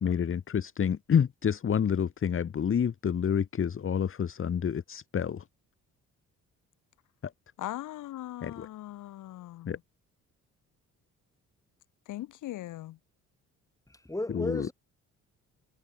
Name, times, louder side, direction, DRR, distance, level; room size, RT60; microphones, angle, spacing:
voice 1, 0.0-5.4 7.2-7.3 8.4-8.7 9.7-9.8 14.3-14.7, left 7 dB, 45° left, 1.7 m, -28 dB
voice 2, 7.6-9.8 12.1-13.0, left 15 dB, 85° left, 3.2 m, -40 dB
voice 3, 13.9-14.7, left 1 dB, 10° left, 6.9 m, -34 dB
cardioid pair, 90°, 30 cm